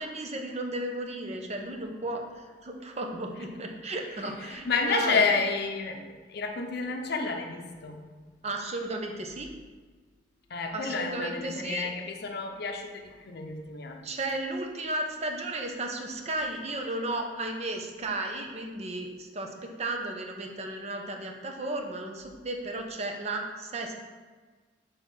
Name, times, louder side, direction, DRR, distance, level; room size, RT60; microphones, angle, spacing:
voice 1, 0.0-5.2 8.4-9.5 10.7-11.9 14.0-23.9, right 2 dB, 40° right, 3 dB, 0.8 m, -34 dB
voice 2, 4.4-8.0 10.5-14.0, left 4 dB, 60° left, 3 dB, 0.6 m, -30 dB
6.3 x 3.5 x 5.4 m, 1.4 s
head